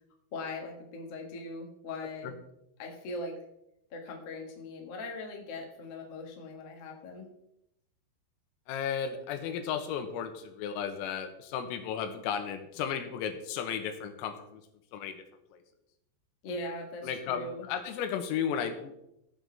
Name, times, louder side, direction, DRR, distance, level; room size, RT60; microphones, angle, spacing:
voice 1, 0.3-2.3 2.8-3.4 3.9-7.3 16.4-17.7, left 2 dB, 70° left, 1 dB, 1.4 m, -40 dB
voice 2, 8.7-14.6 14.9-15.2 15.5-15.6 17.0-19.0, left 8 dB, 85° left, 7 dB, 3.8 m, -34 dB
16.0 x 7.9 x 3.5 m, 0.80 s
omnidirectional pair, 6.0 m